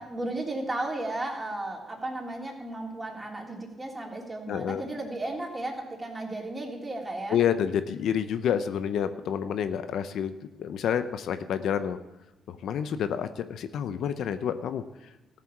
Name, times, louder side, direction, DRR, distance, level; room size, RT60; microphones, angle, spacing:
voice 1, 0.0-7.4, right 2 dB, 15° right, 0 dB, 3.2 m, -34 dB
voice 2, 4.5-4.8 7.3-10.3 10.6-12.0 12.5-14.8, left 8 dB, 75° left, 11 dB, 0.7 m, -28 dB
14.5 x 7.6 x 7.2 m, 1.0 s
cardioid pair, 90°, 0 cm